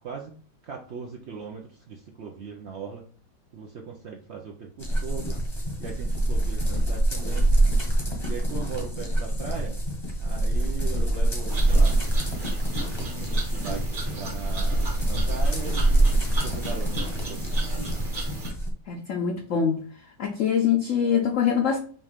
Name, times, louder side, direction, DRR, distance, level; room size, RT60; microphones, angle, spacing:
voice 1, 0.0-3.1 3.5-5.4 5.8-7.5 8.3-9.8 10.2-12.0 12.9-16.1 16.4-17.6, right 6 dB, 80° right, 1 dB, 0.6 m, -39 dB
sound 1, 4.8-18.7, right 1 dB, 20° left, 0.7 m, -25 dB
sound 2, 11.5-18.5, right 3 dB, 35° right, 1.0 m, -37 dB
voice 2, 18.9-19.8 20.2-21.8, left 7 dB, 70° left, 3 dB, 0.7 m, -24 dB
5.6 x 2.5 x 3.4 m, 0.43 s
omnidirectional pair, 2.0 m